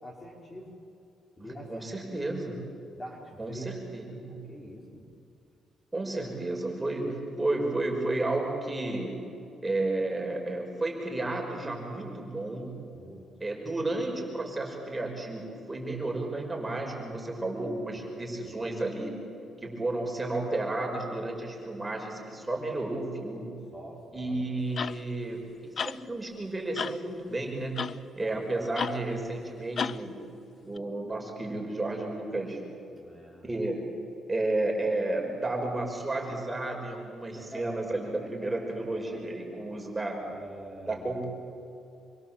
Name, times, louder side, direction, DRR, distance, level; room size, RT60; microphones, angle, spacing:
voice 1, 0.0-0.7 1.4-2.3 2.9-3.8 4.3-5.1 12.9-13.3 18.4-18.7 23.7-24.3 28.2-28.8 32.9-33.5 37.3-37.8 38.8-38.9 40.2-41.1, equal, 20° left, -1 dB, 5.0 m, -45 dB
voice 2, 1.4-2.6 3.4-4.4 5.9-9.3 9.6-12.8 13.4-19.3 19.6-23.6 24.1-27.8 28.2-30.2 30.6-32.6 33.4-33.9 34.3-40.2 40.9-41.3, right 2 dB, 15° right, 1 dB, 5.8 m, -32 dB
sound 1, 24.8-25.0 25.8-26.0 26.8-27.0 27.8-28.0 28.8-29.0 29.8-30.0 30.8-30.9, left 6 dB, 50° left, 0.6 m, -32 dB
27.0 x 24.0 x 7.7 m, 2.6 s
cardioid pair, 90°, 0 cm